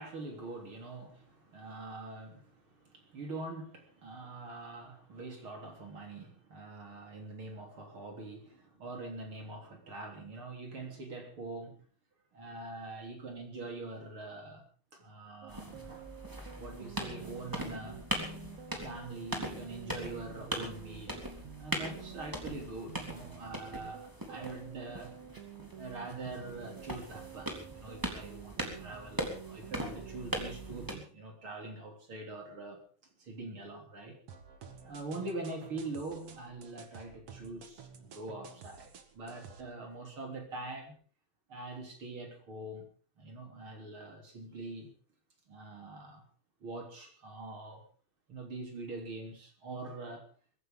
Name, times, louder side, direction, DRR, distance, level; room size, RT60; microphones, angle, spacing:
voice 1, 0.0-11.9 12.3-14.6 14.9-16.1 16.6-18.0 18.7-21.3 21.6-25.1 25.8-32.8 33.2-34.2 34.8-41.0 41.5-42.9 43.2-44.9 45.5-46.3 46.6-47.9 48.3-50.2, right 2 dB, 30° right, 3 dB, 3.5 m, -44 dB
sound 1, 15.4-31.0, right 11 dB, 90° right, 1.6 m, -50 dB
sound 2, 15.5-30.9, equal, 5° right, 2.3 m, -41 dB
sound 3, 34.3-39.6, right 6 dB, 70° right, 1.4 m, -51 dB
23.0 x 15.5 x 3.8 m, 0.40 s
omnidirectional pair, 5.5 m